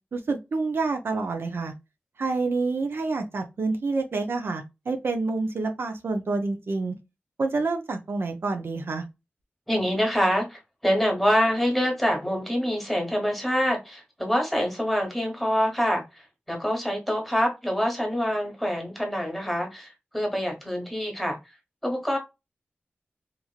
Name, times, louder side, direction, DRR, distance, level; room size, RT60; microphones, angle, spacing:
voice 1, 0.1-1.7 2.2-7.0 7.4-9.0, right 3 dB, 65° right, 0.5 m, -28 dB
voice 2, 9.7-21.5 21.8-22.2, equal, ahead, 1.2 m, -26 dB
3.0 x 2.5 x 2.3 m
wide cardioid pair, 75°, 4 cm